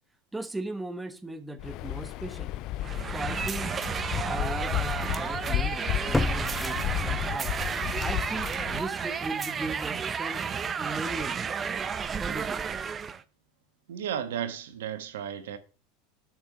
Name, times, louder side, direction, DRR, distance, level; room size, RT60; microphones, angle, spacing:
voice 1, 0.3-2.5 3.0-3.7 4.0-10.4 10.8-11.6 12.2-12.7, right 2 dB, 10° right, 1.3 m, -38 dB
Waves surf, 1.6-8.9, left 14 dB, 55° left, 0.5 m, -33 dB
sound 1, 2.8-3.0 3.5-3.6 6.1-7.6 7.9-8.0, left 2 dB, 10° left, 0.9 m, -30 dB
sound 2, 2.8-13.2, right 6 dB, 30° right, 0.8 m, -32 dB
voice 2, 13.9-15.6, right 9 dB, 85° right, 1.2 m, -34 dB
8.0 x 5.5 x 6.7 m
hypercardioid pair, 100°, 0 cm